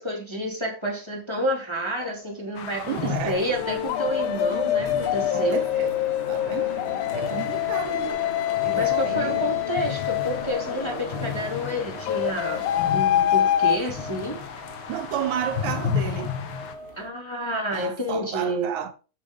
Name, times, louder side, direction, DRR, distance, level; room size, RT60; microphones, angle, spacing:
voice 1, 0.0-5.7 8.7-14.4 17.0-18.7, equal, 10° left, 2.0 m, -29 dB
sound 1, 2.0-2.2 3.5-10.9 12.1-13.8, left 11 dB, 75° left, 1.5 m, -25 dB
sound 2, 2.5-16.7, left 8 dB, 60° left, 1.3 m, -35 dB
voice 2, 2.9-3.4 5.3-6.0 6.3-6.7 7.1-8.2 8.6-9.4 14.9-16.4 17.7-18.9, right 10 dB, 75° right, 2.3 m, -32 dB
sound 3, 3.3-17.1, left 1 dB, 25° left, 1.7 m, -39 dB
7.8 x 7.5 x 5.1 m
omnidirectional pair, 3.5 m